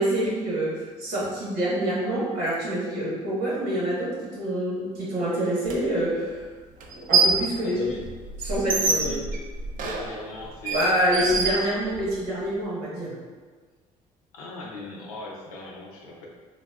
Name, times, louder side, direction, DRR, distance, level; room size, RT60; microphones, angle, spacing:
voice 1, 0.0-6.4 6.9-7.8 8.4-9.2 10.7-13.1, right 1 dB, 65° right, -6 dB, 1.2 m, -26 dB
sound 1, 5.7-5.8 6.8-7.5 7.8-12.2, right 3 dB, 50° right, 0.5 m, -26 dB
voice 2, 7.6-8.0 8.8-9.4 9.7-10.9 11.2-11.4 14.3-16.3, left 2 dB, 90° left, -2 dB, 0.5 m, -39 dB
3.9 x 2.1 x 2.3 m, 1.4 s
hypercardioid pair, 60°, 18 cm